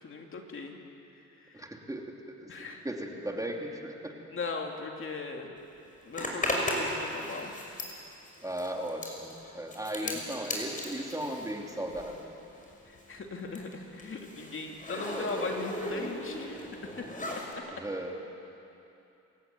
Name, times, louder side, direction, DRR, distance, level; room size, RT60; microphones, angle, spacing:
voice 1, 0.0-0.7 1.4-1.6 2.5-2.9 4.3-5.6 6.0-7.5 10.0-10.2 12.9-17.7, left 3 dB, 45° left, 2 dB, 2.8 m, -39 dB
voice 2, 1.5-2.5 2.8-4.1 8.4-12.3 17.7-18.2, right 1 dB, 10° right, 1 dB, 3.0 m, -37 dB
Zipper (clothing), 6.1-12.3 12.6-17.5, left 1 dB, 25° left, 5.7 m, -36 dB
28.0 x 15.5 x 9.3 m, 2.8 s
cardioid pair, 90°, 30 cm